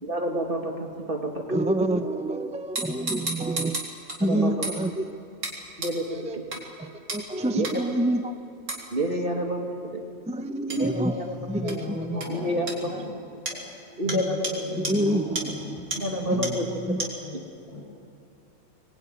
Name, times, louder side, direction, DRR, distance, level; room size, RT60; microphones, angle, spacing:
voice 1, 0.0-1.6 4.2-4.7 5.8-6.4 7.5-7.7 8.9-10.0 10.7-11.3 12.3-12.9 14.0-14.6 15.9-16.7, equal, 35° right, 1 dB, 2.5 m, -29 dB
voice 2, 1.5-3.8 4.2-5.0 6.1-6.4 6.8-8.4 10.3-12.2 12.9-13.0 14.1-14.2 14.8-15.5 16.3-17.1, right 1 dB, 5° right, 8 dB, 0.7 m, -27 dB
sound 1, 2.8-4.2 4.6-4.8 5.4-5.6 5.8-5.9 6.5-6.6 7.1-7.2 7.6-7.7 8.7-8.8 10.7-10.8 11.7-11.8 12.2-12.3 12.7-12.8 13.5-13.6 14.1-14.2 14.4-14.5 14.8-14.9 15.4-15.5 15.9-16.0 16.4-16.5 17.0-17.1, right 2 dB, 80° right, 4.3 m, -31 dB
voice 3, 11.6-13.1 13.5-13.7 14.0-16.0 16.2-16.6 17.2-17.8, left 1 dB, 20° left, -6 dB, 6.4 m, -37 dB
25.5 x 21.5 x 9.8 m, 2.6 s
omnidirectional pair, 1.5 m